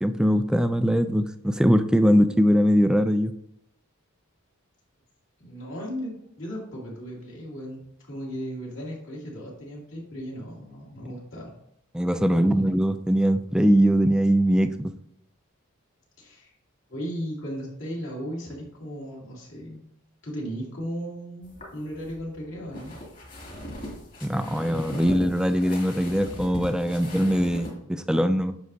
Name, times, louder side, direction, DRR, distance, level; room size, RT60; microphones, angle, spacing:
voice 1, 0.0-3.3 11.9-14.9 24.2-28.5, equal, 5° right, 10 dB, 0.3 m, -21 dB
voice 2, 5.4-11.5 16.2-16.5 16.9-19.8 20.2-23.0, equal, 60° left, -3 dB, 2.6 m, -36 dB
sound 1, 21.4-27.7, equal, 40° left, 2.3 m, -39 dB
9.4 x 6.2 x 2.7 m, 0.76 s
head